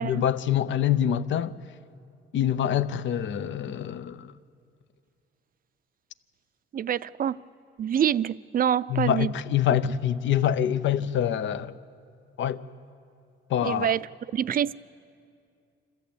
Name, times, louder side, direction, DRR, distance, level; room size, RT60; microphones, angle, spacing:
voice 1, 0.0-1.5 2.3-4.3 8.9-11.8 12.4-12.6 13.5-13.9, left 10 dB, 70° left, 0.8 m, -25 dB
voice 2, 6.7-7.4 7.8-9.3 13.6-14.1 14.3-14.7, right 9 dB, 45° right, 0.5 m, -26 dB
26.5 x 14.0 x 8.5 m
cardioid pair, 90°, 20 cm